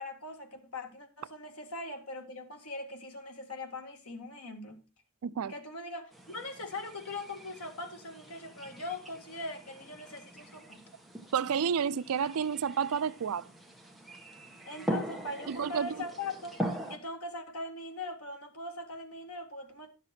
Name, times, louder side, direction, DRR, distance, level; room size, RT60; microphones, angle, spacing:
voice 1, 0.0-4.8 5.5-10.8 14.7-16.6 16.9-19.9, left 2 dB, 80° left, 1.9 m, -41 dB
voice 2, 5.2-5.5 11.3-13.5 15.5-15.9, right 7 dB, 75° right, 0.4 m, -30 dB
sound 1, 6.1-17.0, right 1 dB, ahead, 1.3 m, -42 dB
11.5 x 6.7 x 4.4 m
head